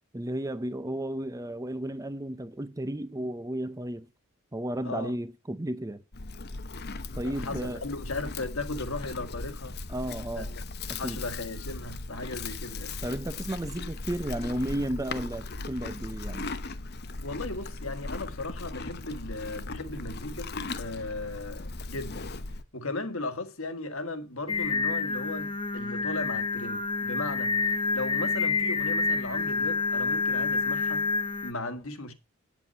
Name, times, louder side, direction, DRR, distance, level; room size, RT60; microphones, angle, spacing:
voice 1, 0.1-4.1 4.5-6.0 7.2-7.9 9.9-10.5 10.9-11.2 13.0-16.5, right 1 dB, 15° right, 0.6 m, -33 dB
voice 2, 4.8-5.2 7.2-9.8 10.4-10.6 10.9-13.0 17.2-22.3 22.7-27.6 27.9-31.1 31.4-32.1, left 2 dB, 65° left, 1.7 m, -36 dB
Livestock farm animals working animals, 6.1-22.6, left 3 dB, 45° left, 0.9 m, -38 dB
Singing, 24.5-31.5, left 4 dB, 20° left, 0.9 m, -28 dB
9.2 x 8.2 x 5.5 m
head